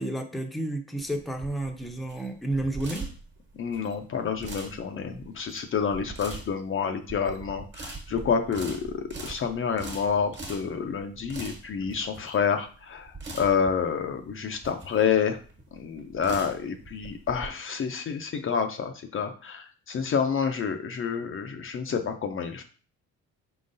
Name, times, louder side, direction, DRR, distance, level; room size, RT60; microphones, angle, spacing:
voice 1, 0.0-3.1, right 1 dB, ahead, 4 dB, 0.6 m, -31 dB
sound 1, 1.0-17.5, right 3 dB, 35° right, 1.3 m, -42 dB
voice 2, 3.6-15.4 15.8-22.6, left 6 dB, 45° left, 6 dB, 0.5 m, -28 dB
4.5 x 3.8 x 2.6 m, 0.40 s
cardioid pair, 90°, 30 cm